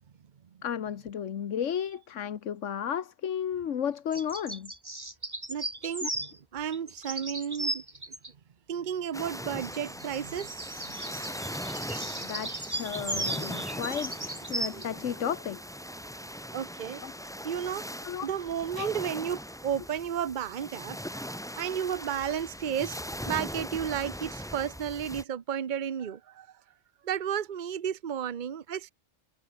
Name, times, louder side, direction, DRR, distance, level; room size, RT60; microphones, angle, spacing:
voice 1, 0.6-4.7 6.0-6.1 12.2-15.6 17.0-17.1 18.0-18.3 18.8-18.9, left 8 dB, 80° left, 1.4 m, -33 dB
sound 1, 4.1-6.4 6.7-8.3 9.6-14.9, right 1 dB, 20° right, 2.2 m, -36 dB
voice 2, 5.5-7.8 8.7-11.0 12.0-12.1 14.4-15.4 16.5-17.0 17.4-17.9 18.2-21.0 21.6-23.0 23.3-26.5 27.0-28.9, right 8 dB, 45° right, 0.9 m, -33 dB
sound 2, 9.1-25.2, equal, 5° left, 2.9 m, -40 dB
omnidirectional pair, 1.3 m